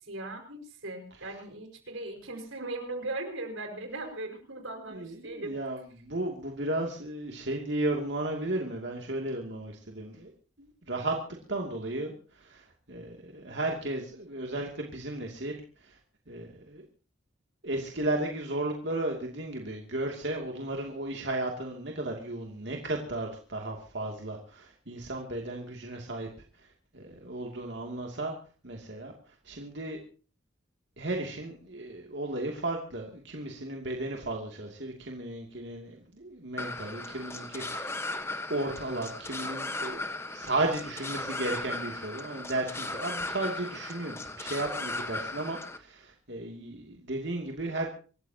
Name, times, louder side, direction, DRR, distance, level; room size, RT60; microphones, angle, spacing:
voice 1, 0.0-5.5, right 2 dB, 85° right, 5 dB, 5.4 m, -38 dB
voice 2, 4.9-10.3 10.6-11.2 11.5-16.0 16.3-16.8 17.6-26.3 26.6-28.3 28.6-30.0 31.0-37.9 38.5-40.0 40.3-47.9, right 2 dB, 60° right, 1 dB, 2.6 m, -34 dB
sound 1, 36.6-45.8, left 2 dB, 15° left, 1.2 m, -37 dB
26.5 x 14.5 x 2.9 m, 0.38 s
head